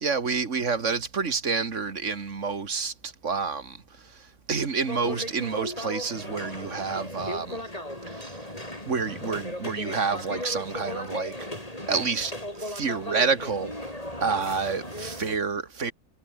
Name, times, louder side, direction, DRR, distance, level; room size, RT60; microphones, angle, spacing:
voice 1, 0.0-3.8 4.5-7.7 8.1-8.4 8.9-11.5 11.9-13.9 14.2-15.9, right 5 dB, 55° right, 2.1 m, -29 dB
sound 1, 4.8-15.4, left 1 dB, 25° left, 7.7 m, -36 dB
omnidirectional pair, 1.5 m